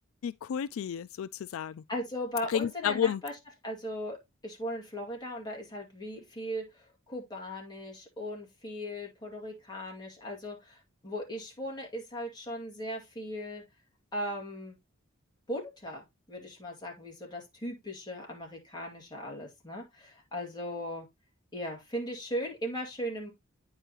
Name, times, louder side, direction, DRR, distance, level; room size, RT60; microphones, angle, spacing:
voice 1, 0.2-1.8 2.5-3.2, left 8 dB, 80° left, 0.3 m, -31 dB
voice 2, 1.9-3.3 3.6-4.2 4.4-10.8 11.0-13.6 14.1-14.8 15.5-16.0 16.3-21.1 21.5-23.3, equal, 20° left, 2.2 m, -38 dB
9.0 x 4.9 x 2.9 m
head